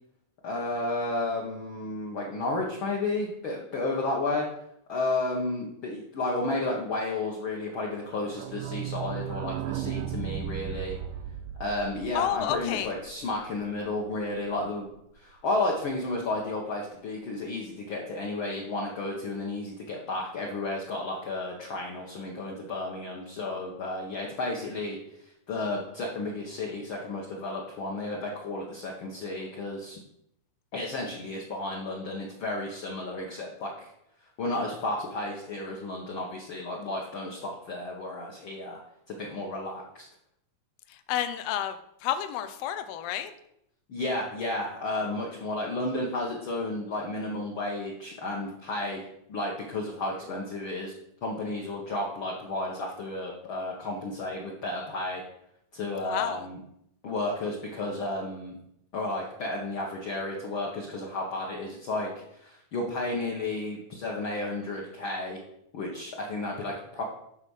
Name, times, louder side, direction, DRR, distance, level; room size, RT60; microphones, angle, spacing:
voice 1, 0.4-4.5 4.9-11.0 11.6-14.8 15.2-25.0 25.5-30.0 30.7-33.9 34.4-38.8 39.1-40.1 43.9-49.0 49.3-50.9 51.2-55.2 55.7-56.6 57.0-58.6 58.9-65.4 65.7-67.0, left 2 dB, 55° left, -2 dB, 1.6 m, -32 dB
sound 1, 8.0-13.5 13.9-14.0 14.1-14.2 14.5-14.6, right 10 dB, 85° right, 2.1 m, -36 dB
voice 2, 12.2-12.9 40.9-41.8 42.0-43.3 56.0-56.5, left 11 dB, 75° left, 10 dB, 1.6 m, -30 dB
11.0 x 4.2 x 6.4 m, 0.77 s
omnidirectional pair, 3.5 m